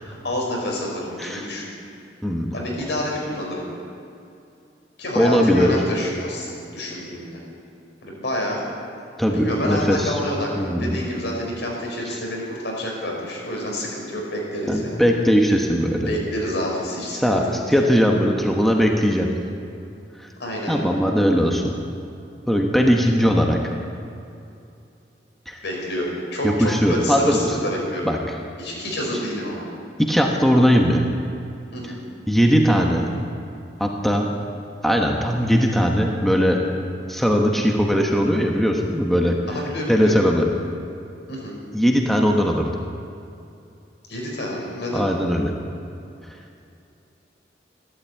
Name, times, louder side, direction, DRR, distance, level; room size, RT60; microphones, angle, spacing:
voice 1, 0.0-1.7 2.5-3.6 5.0-7.4 8.0-8.6 9.3-15.0 16.1-17.7 20.4-21.0 25.6-28.1 28.6-29.6 31.7-32.0 39.5-40.2 41.3-41.6 44.1-45.1, left 1 dB, 80° left, -2 dB, 4.9 m, -28 dB
voice 2, 5.1-5.8 9.2-10.1 10.6-11.0 14.7-16.1 17.1-19.3 20.7-21.8 22.5-23.6 25.5-25.6 26.4-27.5 28.0-28.2 30.0-31.0 32.3-33.1 33.8-34.3 34.8-36.6 37.1-39.3 39.9-40.5 41.7-42.6 44.9-45.5, equal, ahead, 0 dB, 1.1 m, -19 dB
14.0 x 12.5 x 8.3 m, 2.6 s
head